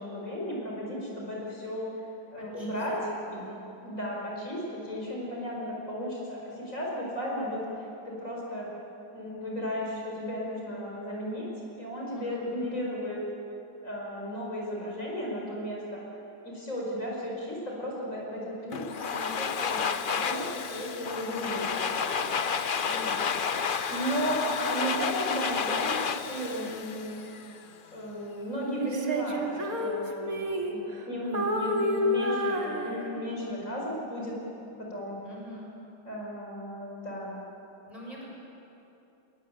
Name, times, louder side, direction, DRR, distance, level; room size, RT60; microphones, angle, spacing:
voice 1, 0.0-1.9 2.3-3.0 3.3-3.4 3.8-7.6 8.2-8.7 9.1-11.5 11.8-13.2 13.8-16.0 16.4-19.8 20.1-22.2 23.9-27.1 27.9-35.2 36.1-37.4, equal, 40° left, -3 dB, 5.8 m, -35 dB
voice 2, 2.4-2.8 3.2-3.7 12.1-12.5 22.8-23.2 35.2-35.8 37.9-38.2, equal, 20° right, -4 dB, 7.0 m, -45 dB
Domestic sounds home sounds, 18.7-27.6, left 6 dB, 65° left, 0.5 m, -31 dB
Female singing, 28.8-31.0 31.3-33.4, left 1 dB, 50° right, 2.5 m, -30 dB
23.5 x 22.5 x 9.0 m, 2.9 s
omnidirectional pair, 2.1 m